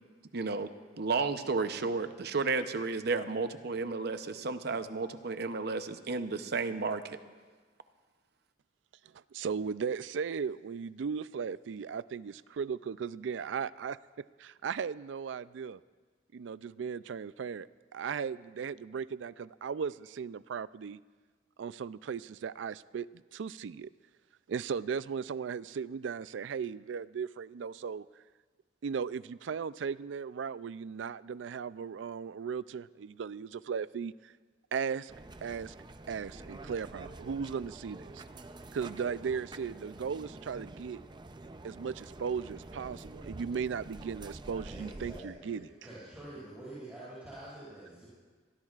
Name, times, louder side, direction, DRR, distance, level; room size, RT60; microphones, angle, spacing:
voice 1, 0.3-0.7 1.0-7.2, right 4 dB, 60° right, 9 dB, 0.8 m, -32 dB
voice 2, 9.1-15.8 16.3-21.0 21.6-23.9 24.5-28.1 28.8-34.3 34.7-35.1 35.4-35.7 36.1-38.2 38.7-41.0 41.6-45.7, right 6 dB, 80° right, 17 dB, 0.4 m, -37 dB
sound 1, 35.1-45.2, right 2 dB, 25° right, 0.6 m, -47 dB
voice 3, 44.7-48.1, right 1 dB, 10° right, -11 dB, 5.8 m, -47 dB
24.5 x 17.5 x 2.5 m, 1.4 s
head